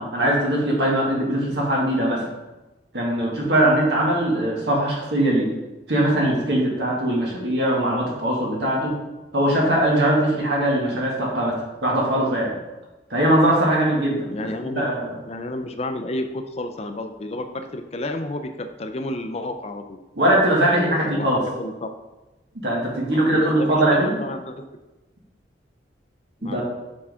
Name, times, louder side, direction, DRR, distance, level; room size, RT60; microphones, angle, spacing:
voice 1, 0.0-2.2 2.9-5.5 5.9-9.0 9.3-12.5 13.1-15.1 20.2-21.4 22.5-24.2 26.4-26.6, right 1 dB, 75° right, -3 dB, 2.0 m, -21 dB
voice 2, 14.3-14.8 15.3-20.0 20.7-21.9 23.1-24.7 26.4-26.6, left 1 dB, 35° left, 7 dB, 0.5 m, -31 dB
7.3 x 4.7 x 3.6 m, 1.1 s
head